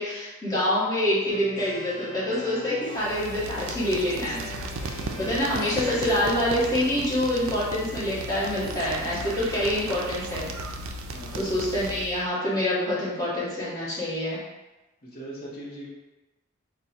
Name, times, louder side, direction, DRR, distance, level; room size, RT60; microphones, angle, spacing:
voice 1, 0.0-4.5 5.2-10.5 11.3-14.4, left 1 dB, 15° left, -9 dB, 1.2 m, -26 dB
sound 1, 1.3-10.6, left 1 dB, 5° right, 1.0 m, -44 dB
sound 2, 2.9-12.3, right 1 dB, 70° right, 0.4 m, -36 dB
voice 2, 5.0-5.4 11.1-11.4 15.0-15.9, right 1 dB, 45° left, -6 dB, 0.9 m, -41 dB
3.6 x 2.2 x 4.2 m, 1.1 s
head